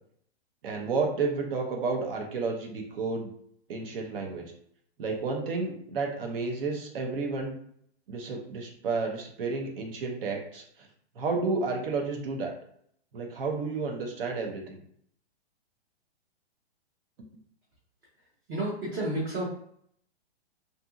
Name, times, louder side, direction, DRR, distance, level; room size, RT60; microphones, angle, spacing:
voice 1, 0.6-3.3 3.7-4.5 5.0-7.5 8.1-10.9 11.1-12.5 13.1-14.8, right 4 dB, 60° right, 1 dB, 0.8 m, -31 dB
voice 2, 18.5-19.5, right 1 dB, 25° right, -5 dB, 0.7 m, -30 dB
2.8 x 2.5 x 2.4 m, 0.66 s
hypercardioid pair, 140°, 33 cm